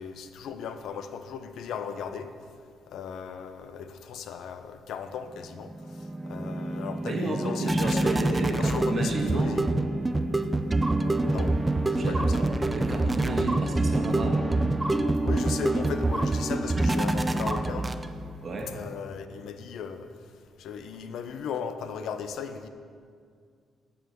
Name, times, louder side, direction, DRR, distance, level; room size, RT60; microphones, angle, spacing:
voice 1, 0.0-2.3 2.9-5.7 6.0-9.6 11.3-11.5 12.1-12.4 15.2-17.9 18.7-20.1 20.6-22.7, left 7 dB, 75° left, 9 dB, 0.6 m, -37 dB
sound 1, 5.6-18.4, right 2 dB, 15° right, 0.4 m, -26 dB
voice 2, 7.0-9.5 12.0-14.4 18.4-18.7, right 2 dB, 45° right, 1 dB, 1.4 m, -32 dB
8.9 x 4.8 x 6.5 m, 2.1 s
cardioid pair, 90°, 0 cm